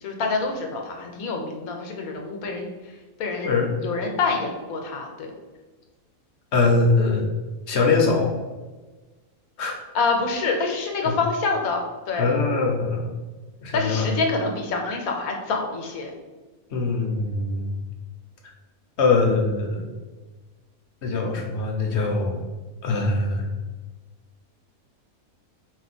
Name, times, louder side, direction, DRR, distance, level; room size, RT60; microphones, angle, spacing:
voice 1, 0.0-2.7 3.2-3.5 3.8-5.3 9.9-12.4 13.7-16.1, left 4 dB, 80° left, 2 dB, 1.2 m, -26 dB
voice 2, 6.5-7.2 7.7-8.3 9.6-9.8 11.0-11.1 12.2-13.1 13.6-14.1 16.7-17.7 19.0-19.8 21.0-22.4 22.8-23.5, left 3 dB, 60° left, 1 dB, 0.9 m, -22 dB
4.6 x 2.2 x 4.2 m, 1.2 s
omnidirectional pair, 1.5 m